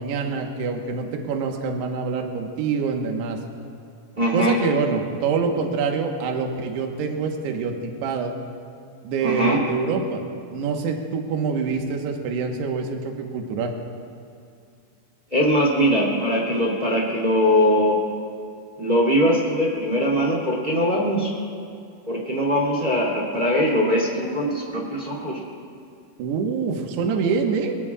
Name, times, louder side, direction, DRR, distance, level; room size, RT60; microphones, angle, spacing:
voice 1, 0.0-3.4 4.3-7.8 8.0-8.3 9.0-10.2 10.5-13.7 26.2-27.7, right 5 dB, 70° right, 2 dB, 3.1 m, -25 dB
voice 2, 4.1-4.6 9.2-9.6 15.3-18.0 18.8-21.3 22.1-25.4, equal, 15° right, -2 dB, 1.9 m, -21 dB
26.5 x 18.5 x 2.5 m, 2.4 s
omnidirectional pair, 5.4 m